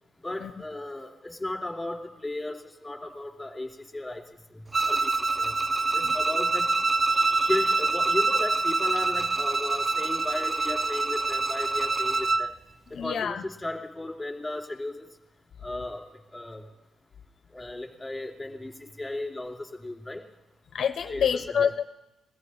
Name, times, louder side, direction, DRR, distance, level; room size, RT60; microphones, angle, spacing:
voice 1, 0.2-4.2 4.9-5.1 5.4-5.5 5.9-6.7 7.5-12.5 12.9-15.1 15.6-16.6 17.5-20.2 21.1-21.3 21.5-21.7, left 2 dB, 10° left, 1 dB, 2.5 m, -35 dB
Bowed string instrument, 4.7-12.5, right 3 dB, 25° right, 0.5 m, -25 dB
voice 2, 7.1-7.5 12.9-13.4 20.7-21.8, left 7 dB, 55° left, 9 dB, 0.5 m, -28 dB
21.0 x 14.0 x 3.2 m, 1.0 s
cardioid pair, 90°, 0 cm